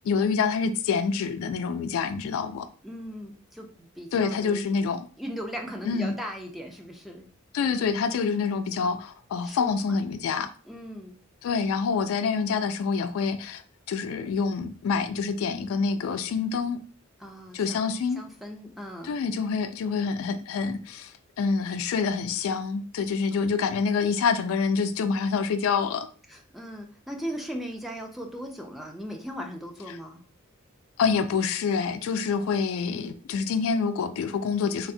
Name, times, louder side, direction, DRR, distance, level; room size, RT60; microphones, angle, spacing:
voice 1, 0.0-2.7 4.1-5.1 5.9-6.1 7.5-10.5 11.4-13.6 13.9-16.8 17.5-18.2 19.0-26.1 31.0-34.9, left 5 dB, 85° left, 0.3 m, -27 dB
voice 2, 2.8-4.6 5.2-7.3 7.8-7.9 9.4-9.7 10.7-11.2 17.2-17.9 18.2-19.2 23.3-23.5 26.3-30.2, equal, ahead, 0.4 m, -38 dB
3.2 x 2.1 x 2.6 m
head